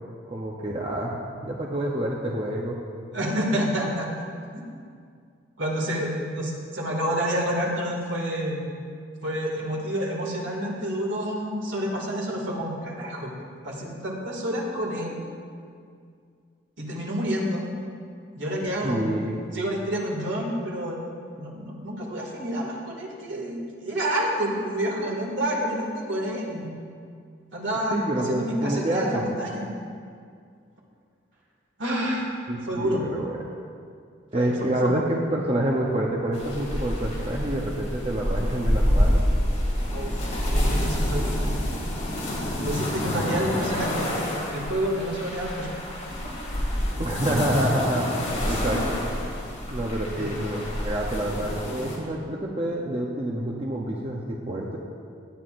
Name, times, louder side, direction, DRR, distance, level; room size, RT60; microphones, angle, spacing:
voice 1, 0.3-2.8 18.8-19.4 27.9-29.2 32.5-33.3 34.3-39.2 43.1-43.4 47.0-48.1 48.5-48.8 49.7-54.8, right 1 dB, 30° right, -2 dB, 0.8 m, -27 dB
voice 2, 3.1-4.1 5.6-8.7 9.2-13.3 13.6-15.2 16.8-17.7 18.3-19.0 19.5-21.0 21.4-26.7 27.5-29.7 31.8-32.3 32.7-33.0 34.3-35.0 39.9-41.6 42.6-45.7 46.4-46.5 48.5-48.7 50.2-50.4, equal, 70° right, -2 dB, 2.2 m, -29 dB
sound 1, 36.3-52.0, equal, 35° left, 2.3 m, -27 dB
17.5 x 9.8 x 2.6 m, 2.2 s
head